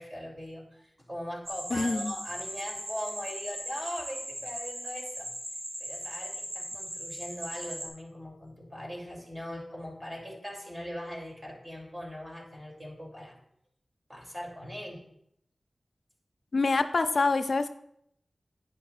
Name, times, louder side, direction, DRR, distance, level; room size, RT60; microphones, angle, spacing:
voice 1, 0.0-5.3 5.8-13.3 14.1-15.0, equal, 25° right, -2 dB, 2.9 m, -40 dB
sound 1, 1.5-7.9, equal, 90° right, 2.9 m, -39 dB
voice 2, 1.7-2.1 16.5-17.7, left 3 dB, 70° left, 9 dB, 0.5 m, -26 dB
11.5 x 9.3 x 2.5 m, 0.72 s
wide cardioid pair, 80°, 0 cm